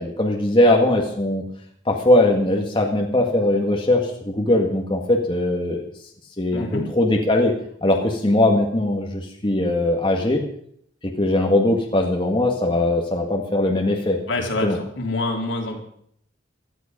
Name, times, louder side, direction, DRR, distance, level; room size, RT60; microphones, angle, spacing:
voice 1, 0.0-1.4 1.9-5.8 6.4-7.5 7.8-10.4 11.0-14.2 14.6-14.8, left 1 dB, 25° left, 1 dB, 1.9 m, -20 dB
voice 2, 6.5-6.8 14.3-15.8, left 2 dB, 75° left, 1 dB, 3.7 m, -26 dB
17.5 x 13.0 x 5.2 m, 0.67 s
head